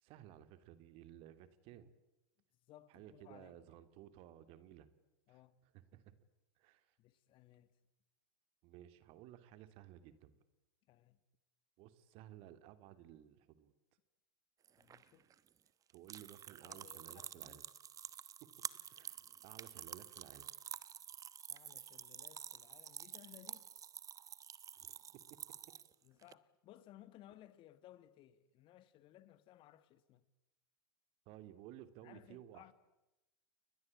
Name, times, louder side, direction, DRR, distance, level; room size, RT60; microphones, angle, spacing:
voice 1, 0.0-1.9 2.9-4.9 5.3-5.4 5.7-6.1 6.6-6.9 8.6-10.4 11.8-13.7 15.9-17.6 18.4-18.5 18.9-20.5 24.8-25.0 25.3-25.4 31.3-32.7, right 12 dB, 50° right, 2.6 m, -56 dB
voice 2, 2.7-3.6 5.3-5.5 7.0-7.7 10.9-11.2 14.8-15.3 16.6-17.6 21.5-23.7 26.0-30.2 32.0-32.7, left 13 dB, 45° left, 2.0 m, -61 dB
sound 1, 14.6-26.3, right 9 dB, 30° right, 1.1 m, -49 dB
30.0 x 21.0 x 8.7 m
hypercardioid pair, 100°, 12 cm